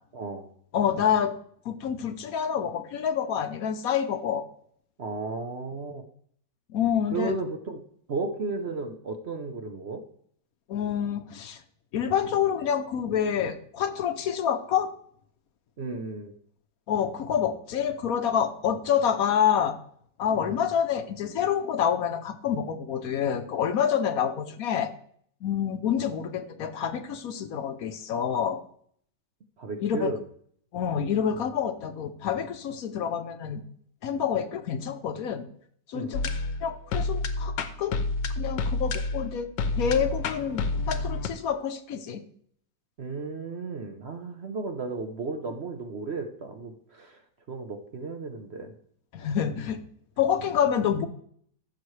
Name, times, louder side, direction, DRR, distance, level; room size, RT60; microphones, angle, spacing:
voice 1, 0.1-0.5 5.0-6.0 7.1-7.8 8.1-10.0 15.8-16.3 20.3-20.7 29.6-30.2 35.9-36.1 43.0-47.2 47.5-48.7, right 3 dB, 50° right, 6 dB, 0.8 m, -34 dB
voice 2, 0.7-1.3 1.7-4.4 6.7-7.3 10.7-11.6 11.9-14.9 16.9-19.8 20.2-24.9 25.4-28.6 29.8-30.1 30.7-33.6 34.0-35.4 35.9-36.3 36.6-38.0 38.4-39.5 39.8-42.2 49.1-49.8 50.2-51.1, left 8 dB, 65° left, 9 dB, 1.0 m, -27 dB
sound 1, 36.1-41.3, left 3 dB, 85° left, 1.5 m, -29 dB
14.5 x 6.8 x 3.2 m, 0.63 s
omnidirectional pair, 1.9 m